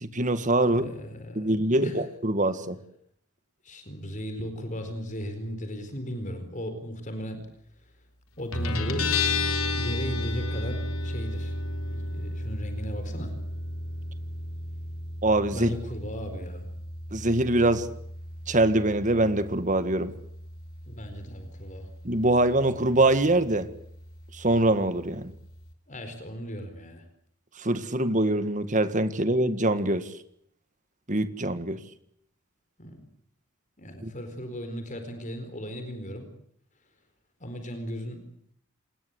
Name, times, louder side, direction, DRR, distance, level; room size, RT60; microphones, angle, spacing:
voice 1, 0.0-0.9 1.4-2.8 15.2-15.7 17.1-17.9 18.5-20.1 22.0-23.7 24.3-25.3 27.6-30.1 31.1-31.8 34.0-34.1, right 2 dB, 35° right, 11 dB, 1.8 m, -24 dB
voice 2, 0.6-2.0 3.6-7.4 8.4-9.1 9.7-11.5 11.9-13.3 15.5-16.7 20.9-21.9 25.9-27.0 32.8-33.0 33.8-36.3 37.4-38.2, equal, 35° left, 8 dB, 4.3 m, -36 dB
Guitar, 8.5-25.7, left 2 dB, 70° left, 3.7 m, -34 dB
27.5 x 21.0 x 8.2 m, 0.66 s
head